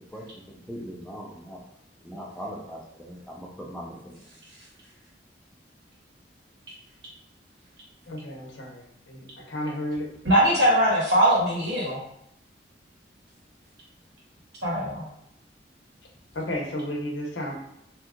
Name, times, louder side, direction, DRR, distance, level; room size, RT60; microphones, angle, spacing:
voice 1, 0.0-1.6 2.0-4.1, equal, 5° left, -3 dB, 0.5 m, -40 dB
voice 2, 8.1-8.8 9.1-9.2 9.5-10.1 16.3-17.5, left 1 dB, 80° left, 0 dB, 0.7 m, -32 dB
voice 3, 10.2-12.0 14.6-15.0, equal, 70° right, -6 dB, 1.5 m, -21 dB
2.8 x 2.4 x 3.5 m, 0.76 s
head